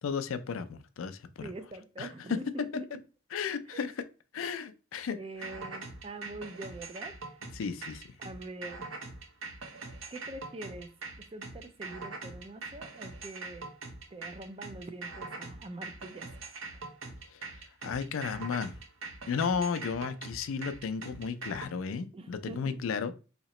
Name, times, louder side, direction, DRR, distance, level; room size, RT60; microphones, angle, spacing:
voice 1, 0.0-1.5 2.0-2.4 3.3-4.0 4.3-5.5 7.5-8.0 17.3-17.4 17.8-18.7 19.3-23.1, left 6 dB, 70° left, 0.4 m, -34 dB
voice 2, 1.4-2.9 3.7-3.8 5.1-7.3 8.2-8.9 10.1-13.7 14.1-16.3 16.7-16.9 22.1-22.8, right 2 dB, 25° right, 0.4 m, -44 dB
sound 1, 5.4-21.7, right 3 dB, 70° right, 0.7 m, -43 dB
2.9 x 2.8 x 4.1 m
head